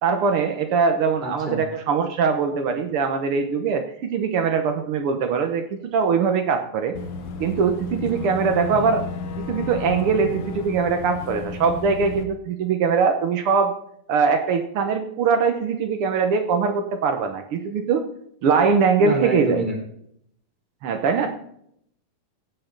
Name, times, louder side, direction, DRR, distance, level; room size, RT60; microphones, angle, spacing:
voice 1, 0.0-6.9 7.4-9.0 9.4-13.7 14.1-18.0 18.4-19.6 20.8-21.3, right 5 dB, 90° right, 6 dB, 1.2 m, -22 dB
voice 2, 1.2-1.6 8.7-8.8 19.0-19.8, right 1 dB, 15° right, 0 dB, 3.2 m, -27 dB
Boat Water vehicle / Engine, 6.9-12.2, left 4 dB, 65° left, 1.4 m, -32 dB
16.5 x 6.9 x 3.8 m, 0.69 s
omnidirectional pair, 4.0 m